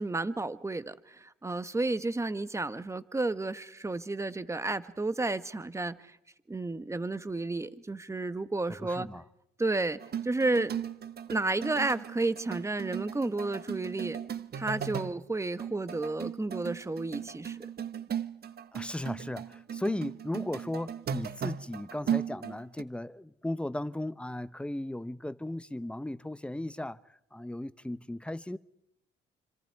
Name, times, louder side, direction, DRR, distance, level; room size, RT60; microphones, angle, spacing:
voice 1, 0.0-6.2 6.5-9.1 9.6-10.7 11.3-14.2 14.5-17.6, right 2 dB, 15° right, 1.2 m, -32 dB
voice 2, 8.8-9.2 18.7-28.6, left 1 dB, 5° left, 0.9 m, -36 dB
sound 1, 10.0-15.2 15.6-22.8, right 8 dB, 55° right, 1.2 m, -37 dB
27.5 x 26.0 x 4.7 m
cardioid pair, 90°, 20 cm